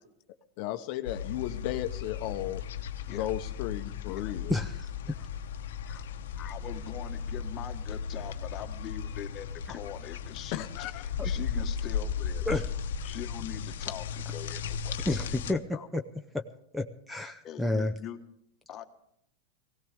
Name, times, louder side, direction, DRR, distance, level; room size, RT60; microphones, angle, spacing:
voice 1, 0.6-2.6 3.1-4.5 10.5-11.0, left 13 dB, 50° left, 0.9 m, -34 dB
sound 1, 1.0-15.5, left 7 dB, 80° left, 0.9 m, -36 dB
voice 2, 4.5-4.9 11.2-11.3 12.5-12.6 15.1-15.6 15.9-16.0 16.3-16.4 16.7-17.9, left 1 dB, ahead, 0.7 m, -30 dB
voice 3, 6.4-12.5 13.0-15.0 15.2-15.9 17.4-18.2 18.7-18.8, left 10 dB, 30° left, 1.5 m, -43 dB
20.0 x 17.0 x 3.5 m
supercardioid pair, 135°, 0 cm